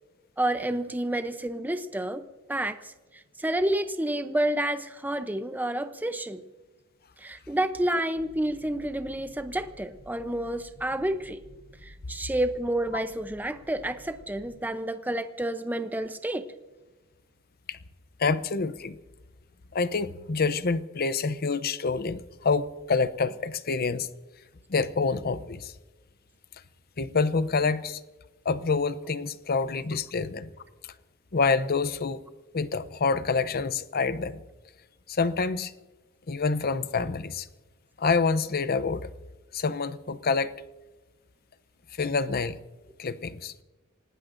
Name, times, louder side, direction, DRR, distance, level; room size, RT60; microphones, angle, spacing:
voice 1, 0.4-2.2 2.5-6.4 7.2-11.4 11.8-16.5, right 1 dB, 10° right, 0.6 m, -29 dB
sound 1, 8.2-14.6, equal, 85° right, 3.1 m, -52 dB
voice 2, 18.2-19.0 19.7-24.1 24.7-25.7 27.0-28.0 28.4-30.5 31.3-32.2 32.5-34.4 35.1-35.7 36.3-37.5 38.0-39.1 39.5-40.5 42.0-42.6 43.0-43.5, left 4 dB, 45° left, 0.6 m, -27 dB
28.0 x 18.5 x 2.6 m
head